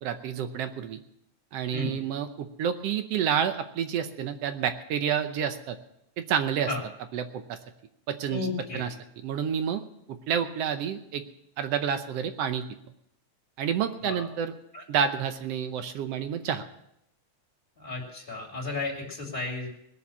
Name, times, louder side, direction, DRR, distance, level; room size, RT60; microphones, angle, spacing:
voice 1, 0.0-1.0 1.5-5.8 6.2-6.7 7.1-7.6 8.1-8.5 8.7-8.9 9.2-9.8 10.1-11.2 11.6-12.7 13.6-14.5 14.9-16.6, right 8 dB, 70° right, 9 dB, 1.7 m, -29 dB
voice 2, 8.3-8.9 14.0-14.3 14.7-14.8 17.8-19.7, left 3 dB, 20° left, -2 dB, 2.7 m, -33 dB
19.5 x 7.1 x 7.1 m, 0.79 s
omnidirectional pair, 3.3 m